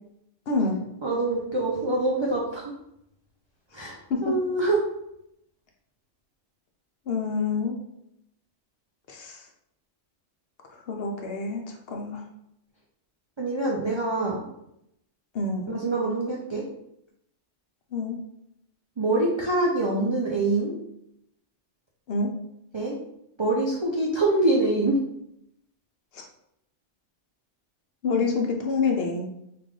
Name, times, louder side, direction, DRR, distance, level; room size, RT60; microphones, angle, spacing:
voice 1, 0.5-0.8 4.1-4.3 7.1-7.8 9.1-9.5 10.7-12.2 15.3-15.8 17.9-18.2 22.1-22.3 26.1-26.3 28.0-29.3, left 4 dB, 65° left, 2 dB, 0.7 m, -27 dB
voice 2, 1.0-2.7 3.7-4.8 13.4-14.5 15.7-16.6 19.0-20.7 22.7-23.0 23.4-25.0, right 2 dB, 50° right, -3 dB, 0.3 m, -25 dB
3.3 x 2.4 x 3.6 m, 0.80 s
omnidirectional pair, 1.2 m